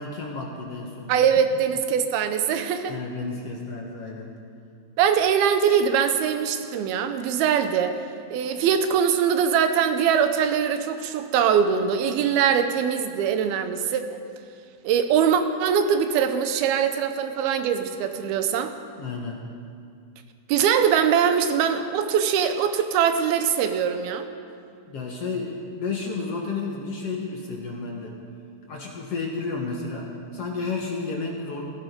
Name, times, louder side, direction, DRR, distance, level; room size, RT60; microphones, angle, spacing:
voice 1, 0.0-1.2 2.9-4.3 19.0-19.4 24.9-28.1 28.7-31.6, left 4 dB, 55° left, -1 dB, 1.9 m, -32 dB
voice 2, 1.1-2.9 5.0-8.0 8.3-14.2 14.8-18.7 20.5-24.3, right 7 dB, 85° right, 8 dB, 2.8 m, -22 dB
16.0 x 16.0 x 5.3 m, 2.4 s
omnidirectional pair, 4.3 m